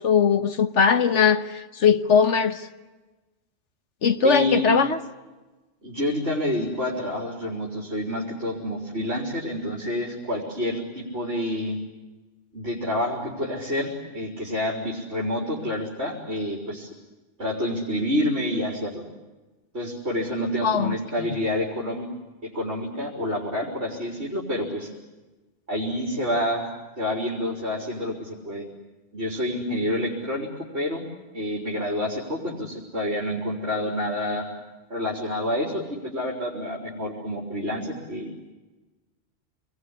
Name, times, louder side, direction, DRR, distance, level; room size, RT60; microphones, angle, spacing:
voice 1, 0.0-2.7 4.0-5.0 20.6-21.3, left 6 dB, 75° left, 10 dB, 1.7 m, -20 dB
voice 2, 4.2-4.7 5.8-11.8 12.5-16.9 17.4-19.0 19.7-22.1 22.5-24.9 25.7-28.7 29.1-31.0 31.3-34.5 34.9-38.3, left 1 dB, 60° right, -3 dB, 4.5 m, -28 dB
27.5 x 21.5 x 9.8 m, 1.2 s
omnidirectional pair, 1.2 m